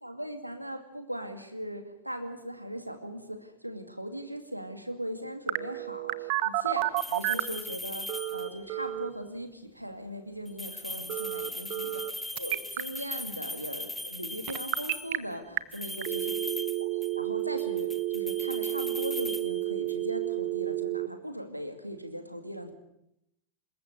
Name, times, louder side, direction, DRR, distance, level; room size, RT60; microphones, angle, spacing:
voice 1, 0.0-12.0 12.3-16.3 16.8-22.7, equal, 90° right, 8 dB, 2.3 m, -39 dB
Telephone, 5.5-7.6 8.1-9.1 11.1-12.1 12.4-12.8 14.5-15.2 15.6-15.7 16.0-21.1, right 18 dB, 45° right, 1.0 m, -31 dB
sound 1, 7.0-8.7 10.5-15.2 15.7-17.3 17.6-20.0, left 1 dB, 5° left, 1.4 m, -39 dB
25.5 x 21.5 x 6.7 m, 0.80 s
figure-of-eight pair, 90°, 0 cm